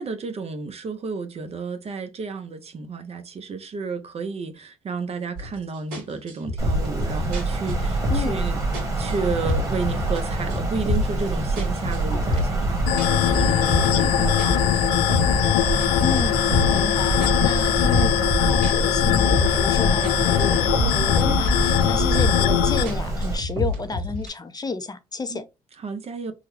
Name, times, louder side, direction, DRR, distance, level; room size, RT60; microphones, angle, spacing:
voice 1, 0.0-8.6 8.9-14.8 25.3-25.4 25.8-26.3, right 4 dB, 45° right, 0.7 m, -32 dB
sound 1, 5.4-5.6 5.9-8.4 8.7-10.2 10.5-11.2 11.6-14.1 14.4-16.9 17.2-19.8 20.0-21.5 21.8-22.5 22.9-24.3, left 1 dB, 75° right, 1.8 m, -28 dB
Wind, 6.6-23.4, right 2 dB, 20° right, 1.6 m, -26 dB
voice 2, 12.1-12.5 16.0-25.4, left 4 dB, 25° left, 0.5 m, -31 dB
sound 2, 12.9-22.8, left 11 dB, 90° left, 0.4 m, -21 dB
3.7 x 2.2 x 3.2 m
supercardioid pair, 70°, 15 cm